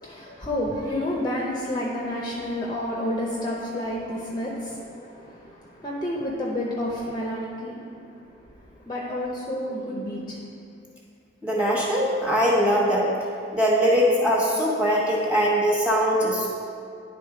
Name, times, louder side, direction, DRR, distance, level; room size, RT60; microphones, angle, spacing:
voice 1, 0.0-8.0 8.8-10.4, left 1 dB, 20° left, -3 dB, 0.6 m, -30 dB
voice 2, 11.4-13.1 13.5-16.5, equal, 5° right, -5 dB, 1.2 m, -21 dB
10.5 x 3.4 x 4.9 m, 2.4 s
head